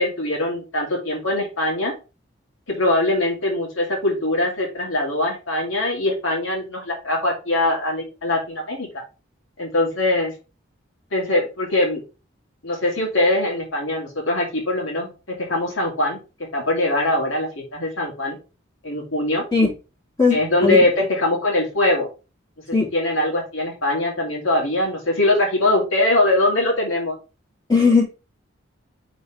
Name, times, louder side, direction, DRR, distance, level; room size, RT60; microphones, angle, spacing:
voice 1, 0.0-1.9 2.7-9.0 9.6-10.3 11.1-12.0 12.6-16.2 16.5-18.4 18.8-19.4 20.3-22.1 22.9-27.1, left 1 dB, 80° left, 2.4 m, -22 dB
voice 2, 20.2-20.8 22.7-22.9 27.7-28.0, left 4 dB, 20° left, 3.3 m, -17 dB
5.4 x 4.1 x 5.1 m
head